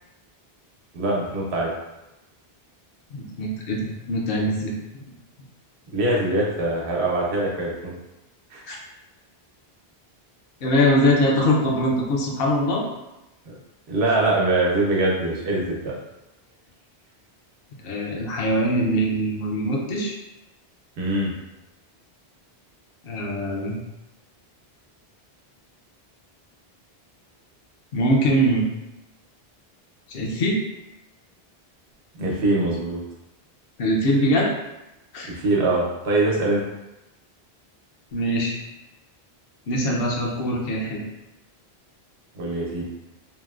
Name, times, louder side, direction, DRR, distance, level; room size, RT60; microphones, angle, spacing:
voice 1, 0.9-1.7 5.9-7.9 8.5-8.6 13.5-13.6 13.9-15.9 21.0-21.3 32.2-33.0 35.2-36.6 42.3-42.9, right 2 dB, 90° right, -3 dB, 1.0 m, -23 dB
voice 2, 3.1-5.1 8.7-8.8 10.6-12.8 17.8-20.1 23.0-23.8 27.9-28.7 30.1-30.6 33.8-34.5 35.1-35.3 38.1-38.5 39.7-41.0, equal, 65° left, -1 dB, 0.8 m, -22 dB
3.1 x 2.0 x 2.3 m, 0.95 s
omnidirectional pair, 1.1 m